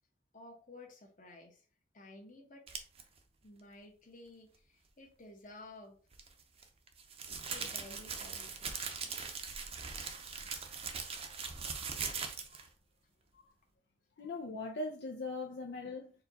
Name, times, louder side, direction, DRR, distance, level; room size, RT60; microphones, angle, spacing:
voice 1, 0.3-1.7 1.9-2.8 3.4-6.0 7.3-8.8, left 2 dB, 45° left, 1.1 m, -54 dB
sound 1, 2.7-3.0 6.1-12.7, right 5 dB, 35° right, 0.6 m, -41 dB
voice 2, 14.2-16.1, left 2 dB, 75° left, 0.5 m, -40 dB
4.4 x 2.3 x 4.0 m
head